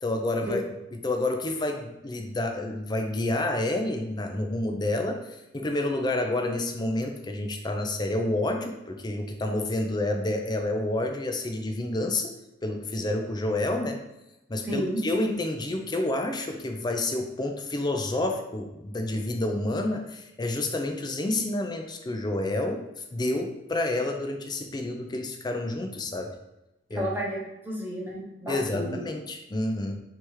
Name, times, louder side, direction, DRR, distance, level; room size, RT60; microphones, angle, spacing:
voice 1, 0.0-0.6 1.0-12.3 12.6-14.0 14.5-26.3 26.9-27.1 28.5-29.9, left 2 dB, 25° left, 3 dB, 0.5 m, -29 dB
voice 2, 14.6-15.0 26.9-29.0, equal, 10° right, -4 dB, 0.9 m, -32 dB
3.3 x 2.9 x 4.7 m, 0.93 s
head